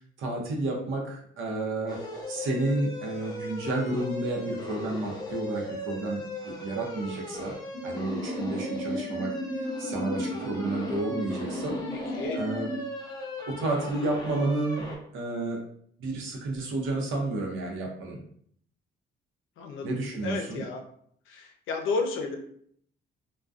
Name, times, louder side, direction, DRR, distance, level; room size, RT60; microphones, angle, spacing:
voice 1, 0.0-2.0 2.3-7.5 7.8-9.3 9.8-11.8 12.3-12.7 13.5-14.9 15.1-15.6 16.0-18.2 19.8-20.6, right 2 dB, 80° right, 0 dB, 0.7 m, -31 dB
sound 1, 1.9-15.0, left 1 dB, 20° left, 0.6 m, -38 dB
sound 2, 7.7-12.7, left 1 dB, 60° right, 1.1 m, -35 dB
voice 2, 11.9-12.4 19.6-19.9 20.2-20.8 21.3-22.4, left 4 dB, 85° left, 3 dB, 0.5 m, -32 dB
2.3 x 2.2 x 2.4 m, 0.64 s
cardioid pair, 90°, 20 cm